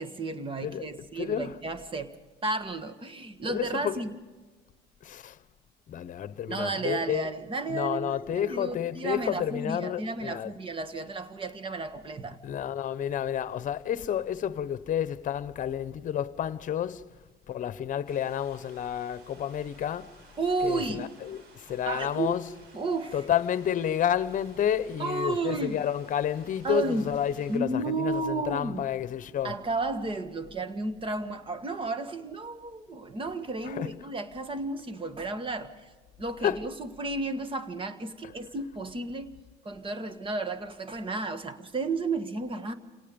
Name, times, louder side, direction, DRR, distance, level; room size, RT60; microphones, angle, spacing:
voice 1, 0.0-2.1 2.4-4.1 6.5-12.4 20.4-21.1 21.8-22.4 22.7-23.2 25.0-25.8 26.6-27.1 27.5-28.9 29.4-35.9 36.2-39.3 39.6-42.7, right 3 dB, 30° right, 1.7 m, -32 dB
voice 2, 1.2-1.6 3.5-3.9 5.0-5.4 5.9-7.3 7.7-10.5 12.4-17.1 17.5-20.1 20.6-22.5 23.1-29.5 33.6-34.0 36.4-36.6, left 9 dB, 50° left, 1.0 m, -30 dB
sound 1, 18.1-27.6, right 3 dB, 70° right, 5.0 m, -56 dB
28.5 x 18.0 x 5.3 m
cardioid pair, 110°, 17 cm